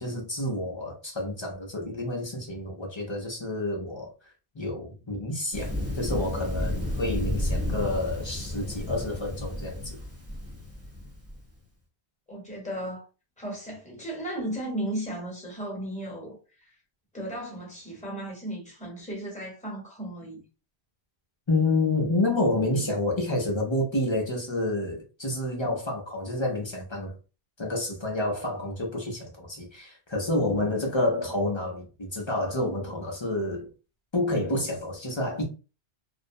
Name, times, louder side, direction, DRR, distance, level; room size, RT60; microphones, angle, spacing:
voice 1, 0.0-4.1 4.5-10.0 21.5-27.2 27.6-33.7 34.1-35.4, left 2 dB, 35° left, 0.5 m, -29 dB
Thunder, 5.5-11.4, left 1 dB, 15° right, 0.6 m, -32 dB
voice 2, 12.3-13.1 13.4-16.7 17.1-20.5, right 1 dB, 5° left, 0.9 m, -35 dB
2.4 x 2.0 x 2.6 m
omnidirectional pair, 1.1 m